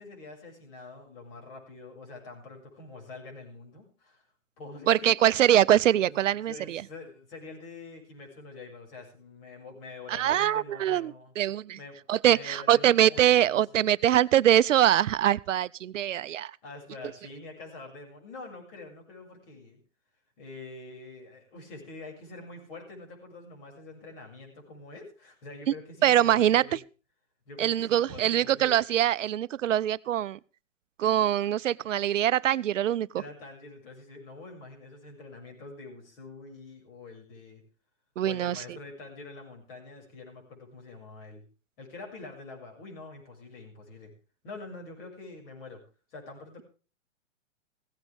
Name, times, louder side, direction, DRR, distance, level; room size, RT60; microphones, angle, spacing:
voice 1, 0.0-4.2 4.6-5.5 5.9-11.3 11.7-13.9 16.6-19.8 20.4-26.8 27.4-28.8 33.1-37.6 38.2-41.4 41.8-44.1 44.4-45.8 46.1-46.6, left 3 dB, 45° left, 6.8 m, -45 dB
voice 2, 4.9-6.8 10.1-11.8 12.1-16.5 25.7-25.8 26.0-26.6 27.6-30.4 31.0-33.1 38.2-38.6, right 11 dB, 75° right, 0.6 m, -23 dB
16.5 x 15.0 x 3.5 m
hypercardioid pair, 130°, 38 cm